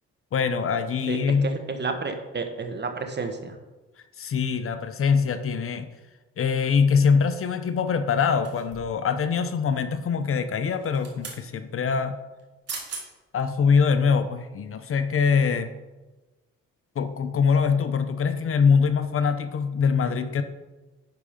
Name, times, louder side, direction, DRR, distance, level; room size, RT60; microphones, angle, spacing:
voice 1, 0.3-1.5 4.2-5.9 6.4-12.2 13.3-15.7 17.0-20.4, left 6 dB, 45° left, 10 dB, 0.7 m, -23 dB
voice 2, 1.1-3.6, right 4 dB, 35° right, 6 dB, 1.3 m, -31 dB
sound 1, 8.4-9.0 10.7-11.4 12.4-12.5 12.7-13.1 13.6-13.7, right 4 dB, 55° right, 2.6 m, -38 dB
10.5 x 4.8 x 5.1 m, 1.2 s
cardioid pair, 90°, 30 cm